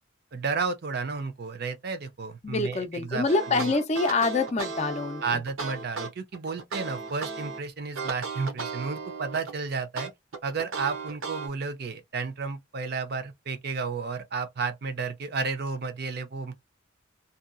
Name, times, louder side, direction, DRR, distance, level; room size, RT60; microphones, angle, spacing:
voice 1, 0.3-3.7 5.2-10.1 10.4-16.5, right 4 dB, 50° right, 0.5 m, -32 dB
voice 2, 2.4-5.4, left 3 dB, 35° left, 0.4 m, -26 dB
sound 1, 3.3-7.6 8.0-9.6 10.0-11.5, right 4 dB, 85° right, 0.8 m, -35 dB
2.7 x 2.3 x 2.4 m
head